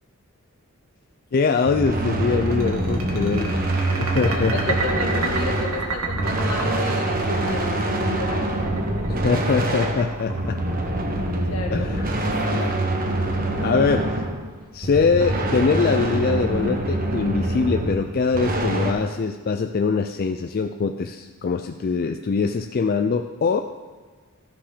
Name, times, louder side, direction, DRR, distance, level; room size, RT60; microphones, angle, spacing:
voice 1, 1.3-3.5 4.0-4.7 9.1-10.6 11.7-12.0 12.5-12.7 13.0-14.1 14.7-23.6, left 4 dB, 45° left, 6 dB, 0.4 m, -23 dB
sound 1, 1.6-18.9, right 1 dB, 40° right, 1.1 m, -25 dB
sound 2, 2.5-11.1, right 4 dB, 75° right, 1.7 m, -31 dB
voice 2, 4.3-8.5 11.5-11.9, left 3 dB, 75° left, 2 dB, 1.5 m, -32 dB
13.5 x 5.7 x 5.0 m, 1.4 s
head